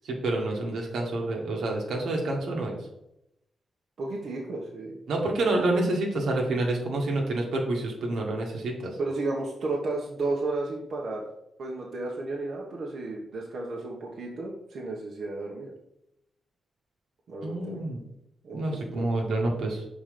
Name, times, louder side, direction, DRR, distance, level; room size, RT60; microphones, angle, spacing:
voice 1, 0.0-2.8 5.1-8.9 17.4-18.0 18.5-19.8, right 2 dB, 85° right, 0 dB, 1.7 m, -28 dB
voice 2, 4.0-5.0 9.0-11.3 11.6-15.7 17.3-17.8 18.4-19.1, right 2 dB, 65° right, -3 dB, 1.3 m, -33 dB
5.8 x 4.6 x 5.2 m, 0.83 s
cardioid pair, 105°, 0 cm